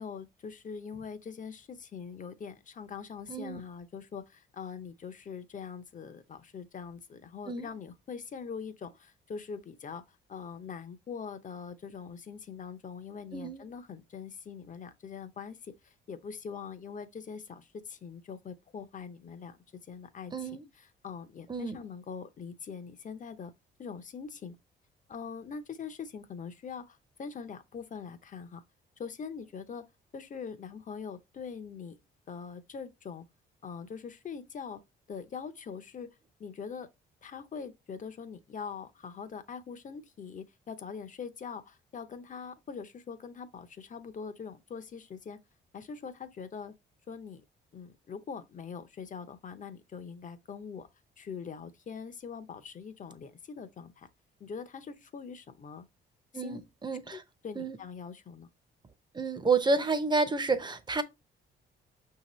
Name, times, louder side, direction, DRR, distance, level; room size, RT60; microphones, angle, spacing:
voice 1, 0.0-23.5 23.8-24.6 25.1-28.6 29.0-29.8 30.1-32.0 32.3-33.3 33.6-34.8 35.1-36.1 36.4-36.9 37.2-45.4 45.7-46.7 47.1-47.4 47.7-50.9 51.2-54.1 54.4-55.8 56.3-56.6 57.1-58.5, left 6 dB, 40° left, 0.6 m, -43 dB
voice 2, 3.3-3.6 7.5-7.7 13.3-13.6 20.3-20.6 21.5-21.7 56.3-57.2 57.6-57.8 59.1-61.0, right 4 dB, 20° right, 0.6 m, -30 dB
5.7 x 2.8 x 3.0 m
cardioid pair, 90°, 20 cm